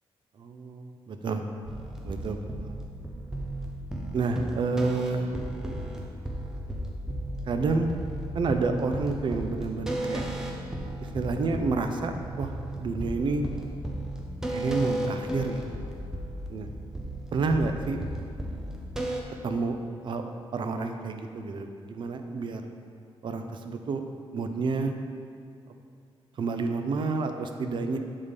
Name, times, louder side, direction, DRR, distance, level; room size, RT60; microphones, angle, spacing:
voice 1, 0.4-1.4 2.0-2.8 4.1-5.3 7.5-7.9 8.3-10.3 11.1-12.5 12.8-13.4 14.5-15.6 16.5-16.7 17.3-18.1 19.4-19.8 20.0-22.6 23.2-24.0 24.3-24.9 26.4-28.0, right 4 dB, 55° right, 6 dB, 0.5 m, -29 dB
sound 1, 1.7-19.2, right 1 dB, 5° right, 0.7 m, -34 dB
8.1 x 3.7 x 5.1 m, 2.4 s
wide cardioid pair, 145°, 10 cm